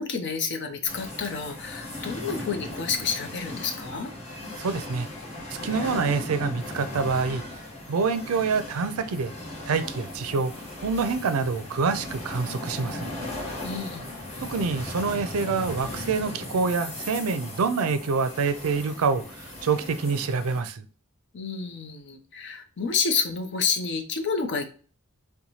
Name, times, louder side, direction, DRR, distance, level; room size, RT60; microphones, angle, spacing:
voice 1, 0.0-4.1 13.6-14.1 21.3-24.6, left 5 dB, 55° left, 0.6 m, -29 dB
sound 1, 0.9-20.6, left 1 dB, 30° left, 1.3 m, -37 dB
voice 2, 4.6-5.1 5.5-7.4 7.9-9.3 9.7-10.5 10.8-13.1 14.4-19.2 19.6-20.9, right 4 dB, 85° right, 0.4 m, -26 dB
4.0 x 2.2 x 3.0 m
head